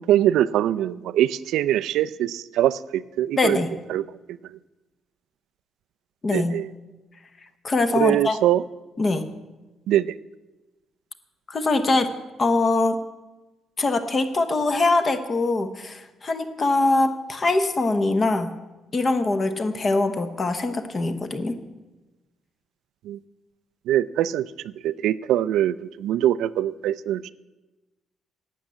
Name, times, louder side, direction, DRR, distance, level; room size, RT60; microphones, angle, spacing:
voice 1, 0.0-3.6 3.9-4.0 6.3-6.7 7.9-8.6 9.9-10.1 23.0-23.2 23.9-27.3, right 12 dB, 90° right, 16 dB, 0.4 m, -23 dB
voice 2, 3.4-3.7 6.2-6.6 7.6-8.4 9.0-9.3 11.5-12.1 12.4-13.0 13.8-18.5 18.9-21.6, left 2 dB, 25° left, 10 dB, 0.9 m, -23 dB
12.0 x 8.3 x 7.7 m, 1.1 s
cardioid pair, 165°, 0 cm